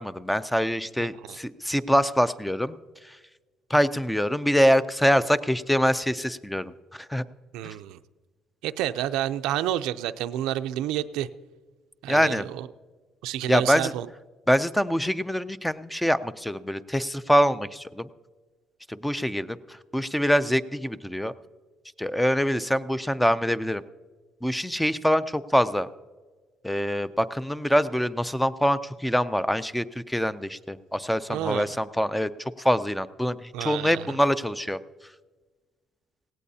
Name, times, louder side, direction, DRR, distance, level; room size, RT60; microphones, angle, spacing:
voice 1, 0.0-2.7 3.0-3.1 3.7-7.2 7.6-7.7 12.1-12.5 13.5-13.9 14.5-18.1 18.9-21.3 22.0-23.8 24.4-25.9 26.6-32.3 32.6-34.8, equal, 5° left, 14 dB, 0.4 m, -24 dB
voice 2, 1.0-1.4 7.5-8.0 8.6-11.3 12.0-12.7 13.2-14.1 31.3-31.8 33.5-34.2, right 12 dB, 90° right, 11 dB, 0.4 m, -30 dB
17.0 x 17.0 x 2.7 m, 1.3 s
cardioid pair, 125°, 0 cm